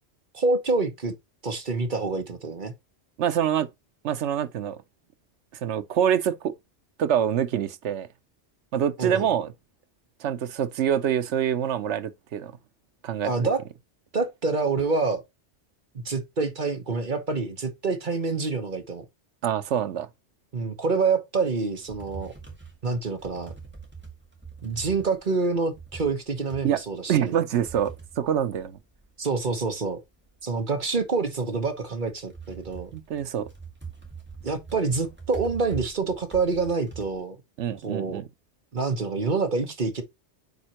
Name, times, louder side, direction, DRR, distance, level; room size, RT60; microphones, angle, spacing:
voice 1, 0.3-1.1 1.4-2.7 9.0-9.3 13.2-13.6 14.1-15.2 16.0-19.0 20.5-22.3 22.8-23.5 24.6-27.4 29.2-30.0 30.4-32.9 34.4-37.4 37.8-38.2 38.7-40.0, right 4 dB, 45° right, 1.2 m, -27 dB
voice 2, 3.2-3.7 4.0-4.8 5.6-6.5 7.0-8.1 8.7-9.5 10.2-12.5 13.0-13.5 19.4-20.1 26.6-26.8 27.1-28.8 32.9-33.5 37.6-38.2, right 9 dB, 80° right, 1.0 m, -25 dB
sound 1, 21.4-29.3 29.7-37.2, right 5 dB, 10° right, 2.0 m, -43 dB
9.4 x 4.4 x 2.9 m
omnidirectional pair, 1.2 m